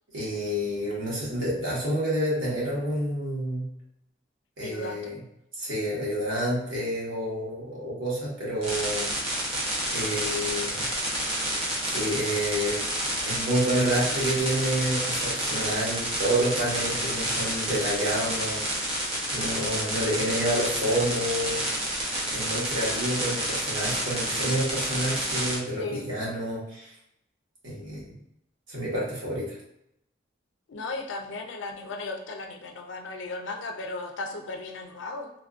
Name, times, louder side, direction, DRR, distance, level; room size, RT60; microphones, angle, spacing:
voice 1, 0.1-3.7 4.6-5.2 5.6-9.1 9.9-10.9 11.8-12.8 13.2-19.0 19.3-21.6 22.3-26.9 27.6-28.1 28.7-29.6, right 1 dB, 85° right, -6 dB, 1.3 m, -29 dB
voice 2, 4.6-5.1 25.8-26.1 30.7-35.3, left 3 dB, 75° left, 4 dB, 0.5 m, -36 dB
sound 1, 8.6-25.6, right 1 dB, 30° right, 0.7 m, -29 dB
3.4 x 2.4 x 2.4 m, 0.79 s
head